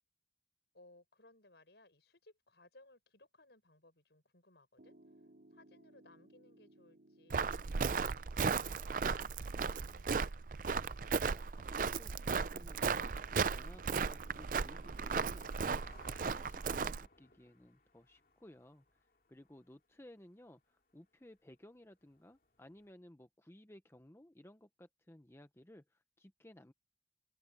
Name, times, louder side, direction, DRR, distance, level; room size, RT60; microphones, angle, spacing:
voice 1, 0.7-4.9 5.5-10.4, left 2 dB, 70° left, 5.9 m, -64 dB
Piano, 4.8-15.8, right 1 dB, 65° right, 2.4 m, -64 dB
Walk footsteps, 7.3-17.1, right 5 dB, 45° right, 0.5 m, -36 dB
sound 1, 10.1-22.9, left 3 dB, 50° left, 2.6 m, -67 dB
voice 2, 11.2-15.5 15.8-19.0 19.3-26.7, left 1 dB, 15° left, 0.7 m, -58 dB
open air
head